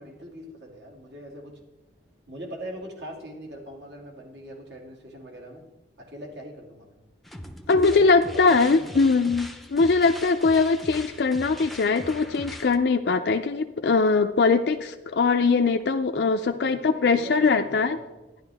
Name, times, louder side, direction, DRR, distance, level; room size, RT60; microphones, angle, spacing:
voice 1, 0.0-1.6 2.3-5.6 6.0-6.9 7.9-9.3 16.6-18.2, equal, 70° right, 0 dB, 2.4 m, -41 dB
sound 1, 7.2-12.8, left 1 dB, ahead, 0.6 m, -41 dB
voice 2, 7.7-18.0, left 4 dB, 65° left, 6 dB, 0.4 m, -21 dB
12.0 x 10.5 x 3.4 m, 1.1 s
head